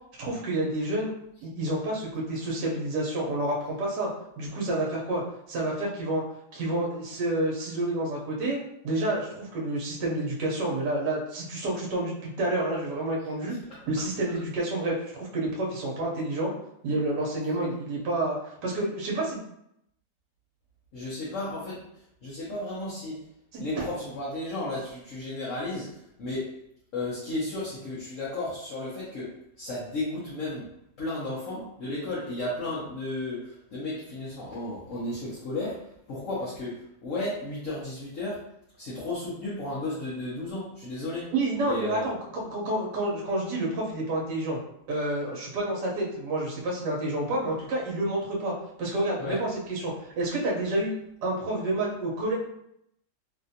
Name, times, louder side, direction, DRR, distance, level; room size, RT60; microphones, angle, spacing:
voice 1, 0.2-1.1 1.4-4.1 4.4-5.2 5.5-6.2 6.5-8.6 8.8-13.5 13.9-16.5 16.8-19.4 23.5-23.6 41.3-42.2 42.5-44.6 44.9-48.5 48.8-50.9 51.2-52.4, right 1 dB, 70° right, -2 dB, 1.3 m, -29 dB
voice 2, 20.9-21.9 22.2-23.2 23.6-26.6 26.9-30.7 31.0-38.5 38.8-41.3 41.7-42.0 49.2-49.4, left 2 dB, 55° left, -8 dB, 1.1 m, -34 dB
3.3 x 2.4 x 2.7 m, 0.76 s
omnidirectional pair, 1.9 m